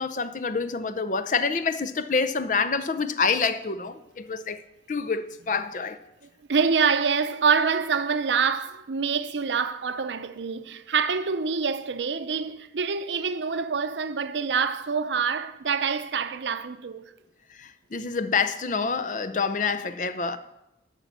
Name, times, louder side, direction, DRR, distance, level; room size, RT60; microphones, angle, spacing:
voice 1, 0.0-4.6 4.9-6.0 17.6-20.4, left 5 dB, 45° left, 0.6 m, -27 dB
voice 2, 6.5-17.1, right 5 dB, 85° right, 0.6 m, -26 dB
11.5 x 5.7 x 8.2 m
head